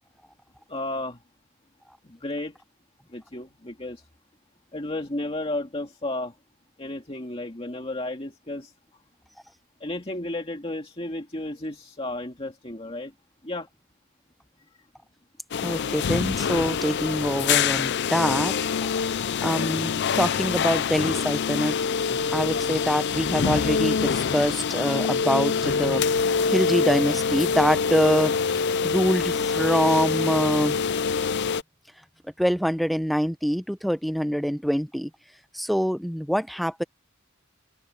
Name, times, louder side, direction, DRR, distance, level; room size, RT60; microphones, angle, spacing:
voice 1, 0.7-1.2 2.0-2.6 3.1-4.1 4.7-6.4 6.8-8.7 9.8-13.1 13.4-13.7 14.8-14.9, left 2 dB, 30° left, 2.1 m, -33 dB
sound 1, 15.5-31.6, left 6 dB, 55° left, 0.5 m, -25 dB
voice 2, 15.6-21.8 22.3-26.0 26.5-30.8 32.4-35.1 35.5-36.8, equal, ahead, 0.7 m, -25 dB
head